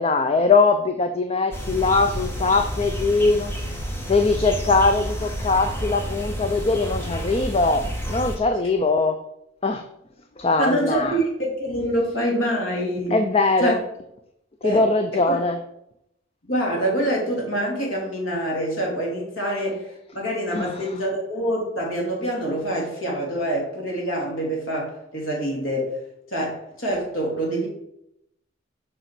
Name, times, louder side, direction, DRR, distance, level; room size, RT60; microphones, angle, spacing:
voice 1, 0.0-3.6 4.1-9.3 9.6-9.9 10.4-11.2 13.1-13.8 14.6-15.6 20.5-20.9, left 3 dB, 30° left, 7 dB, 0.4 m, -21 dB
sound 1, 1.5-8.4, equal, 10° left, 1.4 m, -30 dB
voice 2, 10.6-13.2 13.6-13.7 14.6-14.8 15.3-15.4 16.4-25.9 26.3-27.7, right 1 dB, 85° left, -1 dB, 2.9 m, -25 dB
6.6 x 5.5 x 6.0 m, 0.80 s
head